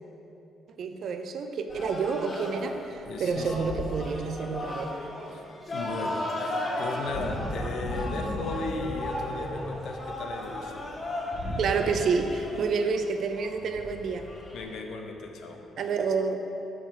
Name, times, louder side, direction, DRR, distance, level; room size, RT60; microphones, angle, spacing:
voice 1, 0.8-4.9 11.6-14.3 15.8-16.4, right 5 dB, 65° right, 6 dB, 0.5 m, -29 dB
sound 1, 1.7-14.6, left 1 dB, 40° left, 1.5 m, -34 dB
voice 2, 3.0-3.8 5.3-5.4 5.7-10.9 14.5-15.6, left 3 dB, 75° left, 4 dB, 0.7 m, -36 dB
6.3 x 5.9 x 4.5 m, 2.9 s
cardioid pair, 90°, 0 cm